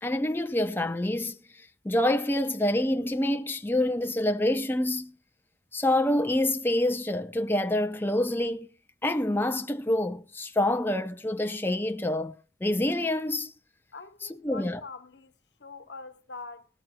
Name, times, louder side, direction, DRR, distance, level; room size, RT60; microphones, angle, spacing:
voice 1, 0.0-1.4 1.8-5.1 5.7-8.7 9.0-12.3 12.6-13.5 14.4-14.8, left 1 dB, 15° left, 0.6 m, -26 dB
voice 2, 13.9-15.3 15.6-16.7, left 4 dB, 75° left, 1.0 m, -44 dB
19.0 x 13.5 x 2.2 m
head